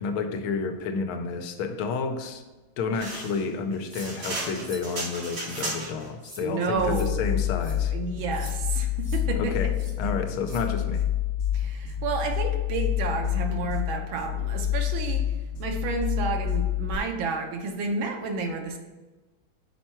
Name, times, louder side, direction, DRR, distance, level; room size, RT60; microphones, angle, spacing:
voice 1, 0.0-2.4 2.8-7.9 9.4-9.7 10.0-11.0, left 4 dB, 85° left, 7 dB, 1.5 m, -30 dB
sound 1, 2.9-6.1, right 2 dB, 90° right, 2.9 m, -35 dB
sound 2, 3.9-4.1 4.6-4.9 5.4-5.7 6.2-6.4 6.8-7.1 7.6-7.7 8.3-8.5 9.0-9.2 9.7-9.9 10.4-10.6, right 1 dB, 25° right, 0.7 m, -45 dB
voice 2, 6.4-9.5 10.0-10.1 11.5-15.2 15.6-18.8, right 4 dB, 75° right, 4 dB, 1.5 m, -31 dB
sound 3, 6.7-17.0, left 11 dB, 60° left, 1.1 m, -28 dB
6.0 x 4.4 x 4.4 m, 1.2 s
omnidirectional pair, 2.3 m